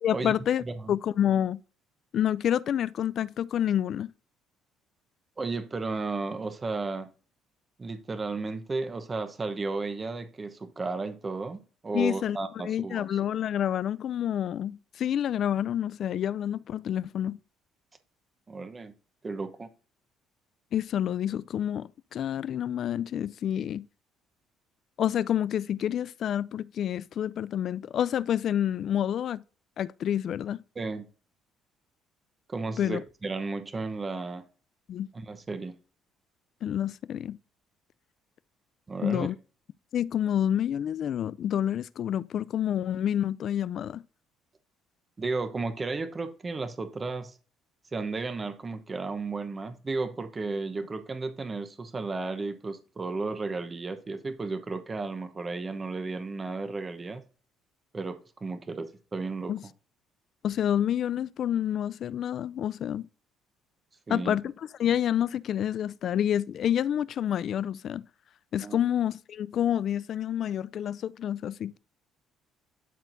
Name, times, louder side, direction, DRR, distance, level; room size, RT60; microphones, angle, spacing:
voice 1, 0.0-0.6 0.9-1.6 2.1-4.1 11.9-17.4 20.7-23.8 25.0-29.4 29.8-30.6 32.8-33.0 34.9-35.1 36.6-37.4 39.0-39.4 39.9-44.0 59.5-59.6 60.4-63.1 64.1-64.5 64.8-68.0 68.5-71.8, left 10 dB, 55° left, 0.3 m, -28 dB
voice 2, 0.6-0.9 5.4-7.1 7.8-13.2 18.5-18.9 19.2-19.7 30.7-31.1 32.5-34.4 35.1-35.8 38.9-39.3 45.2-47.4 47.9-57.2 57.9-59.5 64.1-64.4 68.6-68.8, right 3 dB, 25° right, 0.9 m, -33 dB
12.0 x 4.4 x 2.6 m
cardioid pair, 105°, 0 cm